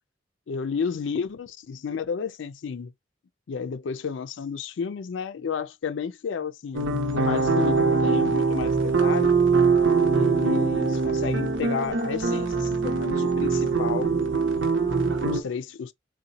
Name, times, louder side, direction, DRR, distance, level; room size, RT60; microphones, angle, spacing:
voice 1, 0.5-2.9 3.5-9.3 10.1-14.1 15.2-15.9, left 6 dB, 75° left, 0.4 m, -32 dB
sound 1, 6.7-15.4, right 4 dB, 90° right, 0.8 m, -23 dB
3.9 x 2.2 x 2.7 m
head